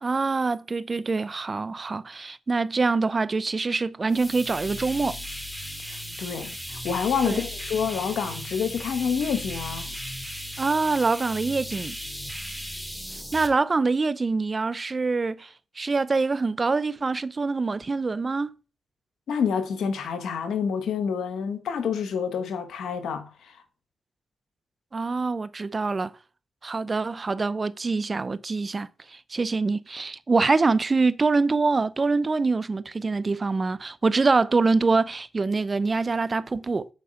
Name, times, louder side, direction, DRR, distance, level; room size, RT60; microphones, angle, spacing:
voice 1, 0.0-5.2 7.2-7.4 10.6-12.0 13.1-18.5 24.9-26.1 26.6-36.9, right 3 dB, 45° right, 0.6 m, -25 dB
sound 1, 4.1-13.5, equal, ahead, 2.6 m, -36 dB
voice 2, 5.9-9.9 19.3-23.5, left 6 dB, 85° left, 1.2 m, -28 dB
8.2 x 4.7 x 6.5 m
supercardioid pair, 45°, 0 cm